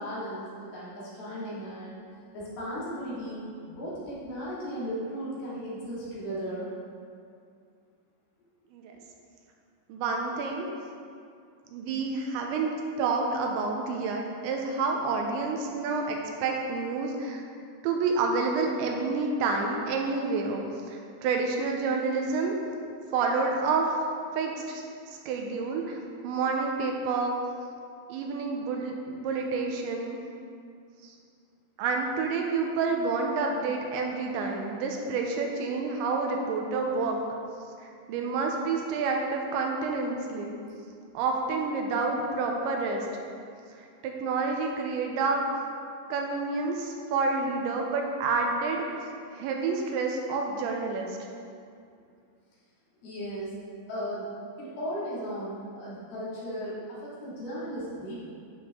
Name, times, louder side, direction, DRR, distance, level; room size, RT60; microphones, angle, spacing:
voice 1, 0.0-2.0 2.3-6.7 53.0-53.5 53.9-54.3 54.6-58.3, equal, 55° left, -9 dB, 3.9 m, -36 dB
voice 2, 9.9-10.7 11.7-12.7 13.0-16.2 16.4-17.4 17.8-22.6 23.1-23.9 24.3-27.4 28.1-30.2 31.0-31.2 31.8-37.2 37.8-40.6 41.1-43.1 43.8-45.4 46.1-49.0 49.3-51.2, right 4 dB, 80° right, 1 dB, 3.0 m, -29 dB
12.0 x 6.8 x 3.7 m, 2.4 s
omnidirectional pair, 5.4 m